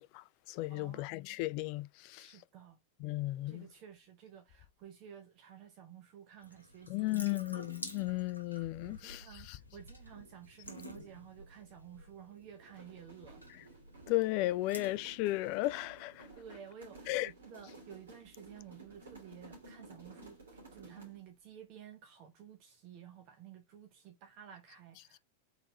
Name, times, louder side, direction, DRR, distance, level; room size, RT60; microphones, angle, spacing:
voice 1, 0.0-2.4 3.0-3.7 6.9-9.6 13.5-13.6 14.1-16.3 17.1-17.3, left 18 dB, 45° left, 0.3 m, -35 dB
voice 2, 0.7-1.0 2.1-2.8 3.5-7.4 8.9-13.4 16.3-20.4 20.7-25.2, right 9 dB, 40° right, 0.9 m, -53 dB
Water tap faucet / Sink (filling or washing) / Drip, 6.4-16.2, left 1 dB, 85° left, 1.1 m, -51 dB
sound 1, 12.6-21.3, right 2 dB, 65° right, 2.7 m, -55 dB
4.1 x 4.1 x 2.9 m
figure-of-eight pair, 90°, 0 cm